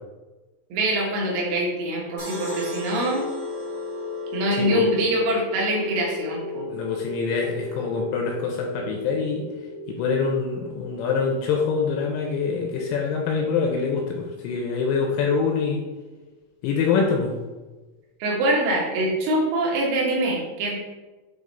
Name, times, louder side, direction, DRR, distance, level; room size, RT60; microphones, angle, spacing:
voice 1, 0.7-3.2 4.3-6.7 18.2-20.8, right 1 dB, 90° right, -3 dB, 4.2 m, -24 dB
sound 1, 1.9-15.8, left 2 dB, 70° right, 4.3 m, -35 dB
sound 2, 2.2-5.5, equal, 40° right, 1.9 m, -43 dB
voice 2, 6.7-9.4 9.9-15.8 16.6-17.3, left 5 dB, 85° left, 1 dB, 2.8 m, -25 dB
9.0 x 3.2 x 4.0 m, 1.2 s
omnidirectional pair, 5.9 m